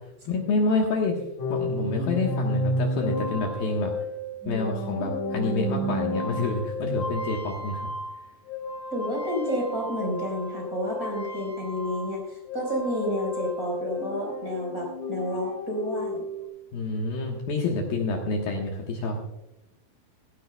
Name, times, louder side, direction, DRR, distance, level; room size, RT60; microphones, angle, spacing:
voice 1, 0.3-1.2 1.5-3.9 4.5-7.9 16.7-19.2, left 3 dB, 65° left, 0 dB, 2.8 m, -28 dB
sound 1, 1.4-12.2 12.5-16.4, left 1 dB, 50° left, 3.4 m, -32 dB
voice 2, 8.9-16.2, equal, 20° right, -1 dB, 4.6 m, -30 dB
17.0 x 16.0 x 2.3 m, 0.94 s
omnidirectional pair, 5.1 m